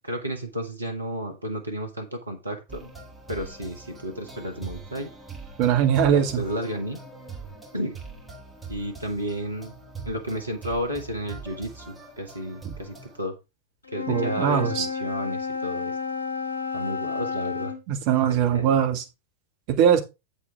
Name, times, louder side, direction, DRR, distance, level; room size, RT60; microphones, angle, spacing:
voice 1, 0.0-2.9 3.3-5.1 6.1-7.0 7.7-8.0 8.7-9.8 10.0-13.3 13.9-16.0 16.7-17.7 18.1-18.7, equal, 80° right, 1.6 m, -32 dB
sound 1, 2.7-13.2, right 3 dB, 10° right, 3.5 m, -42 dB
voice 2, 5.6-6.4 14.1-14.9 17.9-19.0 19.7-20.0, right 9 dB, 45° right, 1.7 m, -21 dB
Wind instrument woodwind instrument, 13.8-17.8, left 5 dB, 75° left, 1.5 m, -31 dB
8.0 x 7.3 x 3.5 m
figure-of-eight pair, 90°, 0 cm